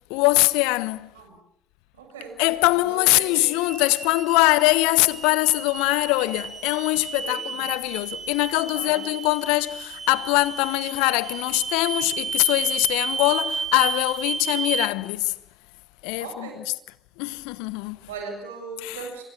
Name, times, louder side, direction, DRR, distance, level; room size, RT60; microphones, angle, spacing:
voice 1, 0.1-1.1 2.4-15.3 16.0-16.5 17.2-18.0 18.8-19.0, left 21 dB, 70° left, 1.0 m, -22 dB
voice 2, 1.9-2.4 2.7-3.5 7.1-7.7 8.7-9.0 16.2-16.6 18.1-19.2, right 4 dB, 80° right, 7.3 m, -38 dB
sound 1, 3.1-14.9, right 5 dB, 35° right, 3.7 m, -33 dB
27.0 x 25.0 x 7.3 m
figure-of-eight pair, 50°, 0 cm